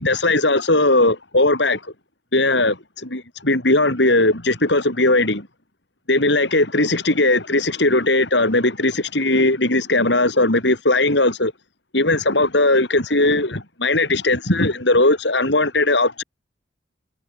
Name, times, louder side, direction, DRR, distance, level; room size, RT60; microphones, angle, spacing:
voice 1, 0.0-1.9 2.3-5.5 6.1-11.5 11.9-16.2, left 2 dB, 70° left, 5.6 m, -18 dB
head